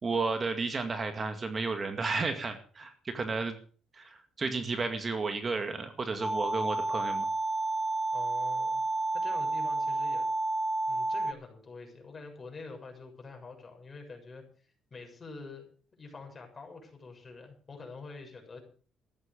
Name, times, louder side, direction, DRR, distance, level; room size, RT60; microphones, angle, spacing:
voice 1, 0.0-3.6 3.9-7.2, right 4 dB, 30° right, 7 dB, 2.2 m, -32 dB
sound 1, 6.2-11.3, right 2 dB, 5° right, 1.7 m, -30 dB
voice 2, 8.1-8.8 9.1-10.3 10.9-15.7 16.0-18.6, left 3 dB, 30° left, 2 dB, 7.2 m, -46 dB
14.5 x 11.0 x 6.7 m, 0.43 s
cardioid pair, 100°, 0 cm